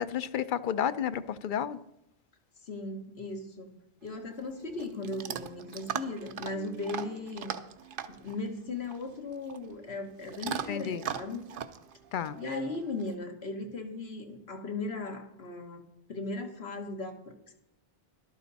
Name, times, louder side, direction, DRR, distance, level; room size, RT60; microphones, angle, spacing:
voice 1, 0.0-1.8 10.7-11.0 12.1-12.4, left 9 dB, 60° left, 14 dB, 0.7 m, -31 dB
voice 2, 2.6-7.5 8.1-11.5 12.4-17.5, left 2 dB, 85° left, 4 dB, 1.7 m, -37 dB
Chewing mastication / Dog, 4.0-13.1, right 8 dB, 60° right, 0.8 m, -41 dB
13.0 x 12.0 x 4.1 m, 0.86 s
omnidirectional pair, 1.1 m